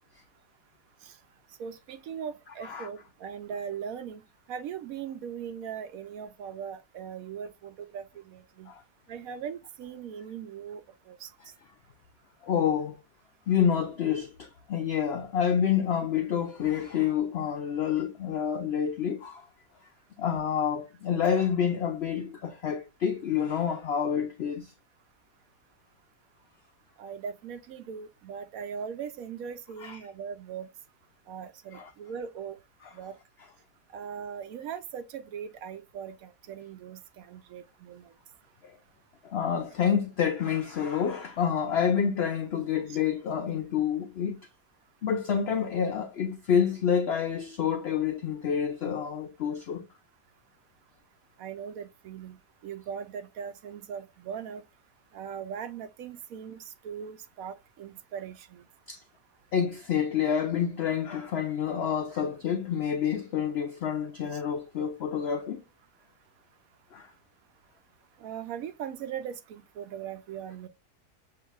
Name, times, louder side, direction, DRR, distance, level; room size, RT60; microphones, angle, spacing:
voice 1, 1.6-4.2 4.5-8.7 9.1-11.3 27.0-30.7 31.3-32.6 32.9-33.2 33.9-38.1 42.9-43.0 51.4-52.4 52.6-54.6 55.1-58.6 68.2-70.7, right 7 dB, 70° right, 0.9 m, -39 dB
voice 2, 12.4-13.0 13.5-19.5 20.2-24.7 29.8-30.0 31.7-31.9 32.8-32.9 38.6-38.8 39.2-44.4 45.0-49.9 58.9-59.0 59.5-65.6 66.9-67.1, left 8 dB, 90° left, 0.5 m, -28 dB
6.7 x 2.6 x 2.3 m
omnidirectional pair, 1.7 m